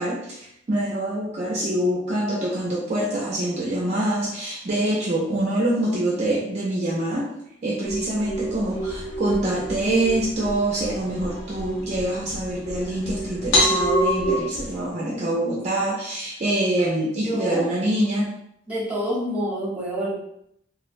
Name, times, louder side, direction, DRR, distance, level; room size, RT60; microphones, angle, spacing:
voice 1, 0.0-7.3 7.6-18.3, right 1 dB, 35° right, -5 dB, 0.4 m, -25 dB
sound 1, 7.8-14.4, right 1 dB, 85° left, 0.6 m, -27 dB
sound 2, 8.7-14.9, equal, 40° left, 0.7 m, -40 dB
voice 2, 17.2-17.7 18.7-20.1, equal, 10° right, -7 dB, 0.8 m, -27 dB
2.4 x 2.0 x 2.5 m, 0.74 s
head